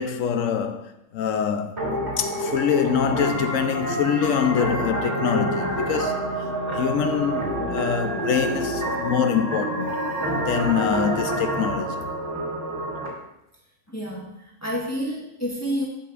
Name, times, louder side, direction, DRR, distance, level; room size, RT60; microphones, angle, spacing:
voice 1, 0.0-1.8 2.2-6.3 6.7-10.0 10.5-12.0, left 8 dB, 80° left, 1.1 m, -25 dB
sound 1, 1.8-13.1, right 1 dB, 20° right, 3.2 m, -28 dB
Keyboard (musical), 3.2-11.3, right 4 dB, 65° right, 1.3 m, -38 dB
voice 2, 13.9-15.9, equal, 10° left, 1.4 m, -29 dB
12.5 x 6.5 x 2.5 m
omnidirectional pair, 1.4 m